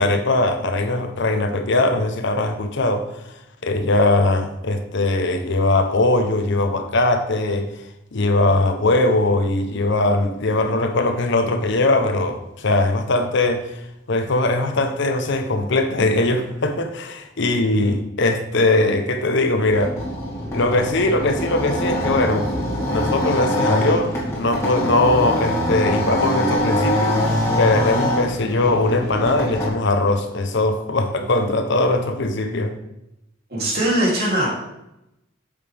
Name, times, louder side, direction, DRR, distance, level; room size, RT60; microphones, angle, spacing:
voice 1, 0.0-3.1 3.6-7.7 8.1-13.8 14.1-19.9 20.5-22.5 22.9-32.7, left 2 dB, 65° left, 0.8 m, -20 dB
sound 1, 19.6-29.7, left 1 dB, 15° left, 2.1 m, -23 dB
voice 2, 33.5-34.5, right 1 dB, 55° right, 3.1 m, -20 dB
8.6 x 6.5 x 3.5 m
head